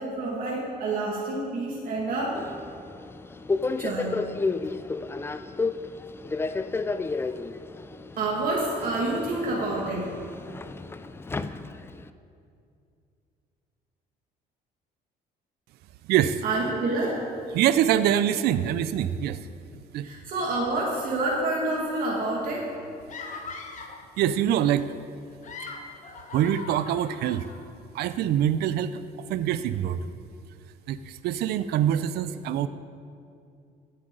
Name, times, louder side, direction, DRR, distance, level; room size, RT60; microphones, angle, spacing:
voice 1, 0.0-2.4 3.8-4.1 8.2-10.1 16.4-17.2 20.0-22.6, right 2 dB, 55° right, -4 dB, 2.0 m, -28 dB
Subway metro underground, 2.3-12.1, left 3 dB, 15° left, 0.3 m, -32 dB
voice 2, 16.1-16.4 17.5-19.5 19.9-20.1 23.8-23.9 24.2-24.9 26.3-27.5 27.9-30.0 30.9-32.7, right 10 dB, 70° right, 13 dB, 0.4 m, -24 dB
sound 1, 23.1-24.1 25.2-27.6, left 4 dB, 45° left, 1.1 m, -40 dB
15.5 x 7.8 x 3.8 m, 2.5 s
cardioid pair, 110°, 17 cm